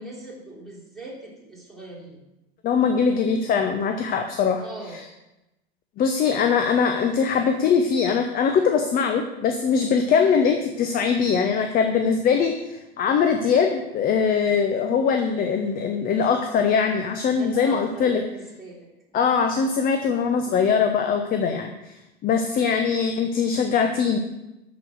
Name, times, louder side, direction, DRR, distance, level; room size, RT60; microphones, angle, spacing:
voice 1, 0.0-2.2 4.6-5.0 17.4-18.9, right 2 dB, ahead, -6 dB, 3.2 m, -40 dB
voice 2, 2.6-4.6 4.9-5.0 6.0-18.2 19.1-22.0 22.2-24.2, left 6 dB, 30° left, 6 dB, 0.8 m, -22 dB
13.0 x 5.1 x 6.3 m, 0.96 s
figure-of-eight pair, 80°, 31 cm